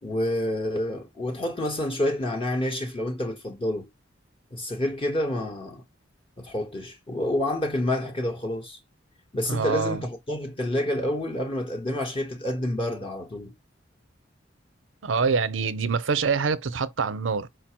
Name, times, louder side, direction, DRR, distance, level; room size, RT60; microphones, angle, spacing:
voice 1, 0.0-3.9 4.5-5.8 6.4-8.8 9.3-13.5, left 1 dB, 30° left, 0.8 m, -28 dB
voice 2, 9.5-10.0 15.0-17.5, right 5 dB, 85° right, 0.6 m, -25 dB
4.7 x 2.0 x 4.3 m
head